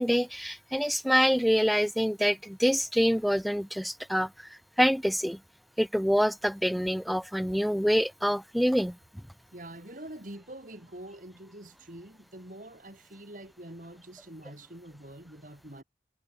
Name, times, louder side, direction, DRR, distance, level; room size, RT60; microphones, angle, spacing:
voice 1, 0.0-4.3 4.8-5.4 5.8-9.0, equal, ahead, 0.4 m, -26 dB
voice 2, 9.5-15.8, right 1 dB, 50° right, 4.6 m, -45 dB
head